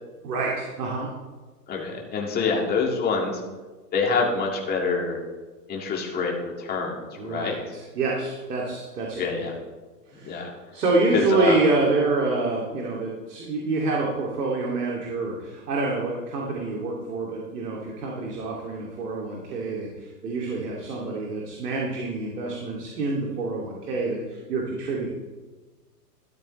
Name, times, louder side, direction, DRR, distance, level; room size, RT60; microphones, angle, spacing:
voice 1, 0.2-1.1 7.2-9.2 10.1-10.4 10.7-25.1, right 3 dB, 70° right, -3 dB, 2.7 m, -27 dB
voice 2, 1.7-3.4 3.9-5.2 5.7-7.6 9.2-9.5 10.2-10.5 11.1-11.6, left 4 dB, 20° left, -1 dB, 2.1 m, -26 dB
13.0 x 12.0 x 3.2 m, 1.3 s
hypercardioid pair, 130°, 49 cm